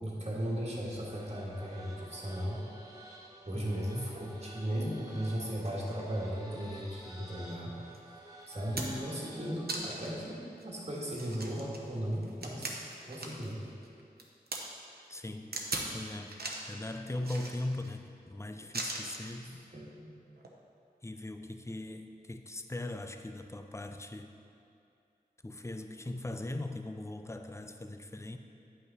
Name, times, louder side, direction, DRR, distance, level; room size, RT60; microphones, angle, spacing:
voice 1, 0.0-2.6 3.5-7.8 8.5-12.8 13.1-13.7 19.7-20.1, equal, 40° right, -5 dB, 1.6 m, -36 dB
sound 1, 1.0-9.8, right 1 dB, 20° right, 1.3 m, -52 dB
voice 2, 3.5-4.2 15.1-16.4 16.7-19.6 21.0-24.3 25.4-28.4, left 1 dB, 15° left, 7 dB, 0.5 m, -40 dB
sound 2, 7.9-8.0 8.5-9.1 9.7-10.2 10.6-10.7 11.1-13.5 13.8-14.6 15.5-15.9 16.3-16.7 17.2-17.9 18.7-19.3 20.4-20.5, right 2 dB, 70° right, 0.9 m, -39 dB
9.2 x 5.8 x 4.0 m, 2.5 s
wide cardioid pair, 50°, 17 cm